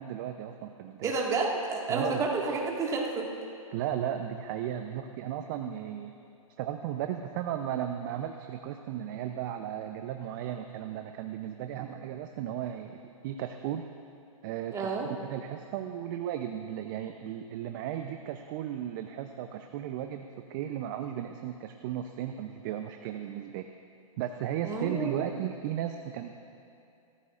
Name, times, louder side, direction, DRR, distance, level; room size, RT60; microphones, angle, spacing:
voice 1, 0.0-1.1 1.9-2.2 3.7-6.1 6.6-13.8 14.4-14.9 15.2-23.7 24.2-26.4, right 10 dB, 35° right, 6 dB, 0.6 m, -35 dB
voice 2, 1.0-3.3 11.8-11.9 14.7-15.1 24.6-25.2, right 4 dB, 15° right, -1 dB, 1.9 m, -30 dB
27.0 x 14.0 x 2.5 m, 2.6 s
hypercardioid pair, 125°, 18 cm